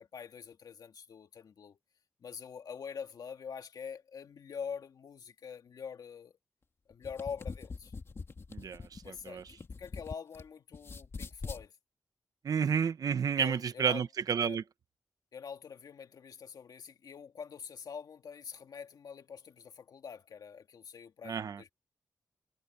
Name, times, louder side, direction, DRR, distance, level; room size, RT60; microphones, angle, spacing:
voice 1, 0.0-1.8 2.2-6.3 6.9-7.9 9.0-11.7 13.4-14.1 14.4-14.6 15.3-21.7, left 6 dB, 75° left, 2.3 m, -45 dB
sound 1, 6.9-10.4 10.7-11.6, left 4 dB, 40° left, 2.5 m, -43 dB
voice 2, 12.4-14.6 21.3-21.6, right 7 dB, 65° right, 0.8 m, -30 dB
wide cardioid pair, 155°, 7 cm